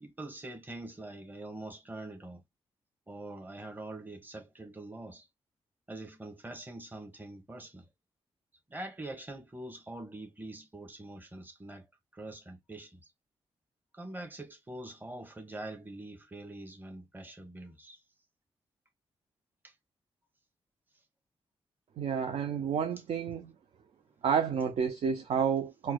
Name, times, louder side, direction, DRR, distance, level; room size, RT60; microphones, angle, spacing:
voice 1, 0.0-2.4 3.1-5.2 5.9-7.8 8.7-11.8 12.1-13.0 14.0-18.0, right 2 dB, 15° right, 1.0 m, -44 dB
voice 2, 22.0-23.5 24.2-25.9, right 7 dB, 65° right, 0.5 m, -30 dB
4.5 x 2.2 x 2.2 m
supercardioid pair, 50°, 11 cm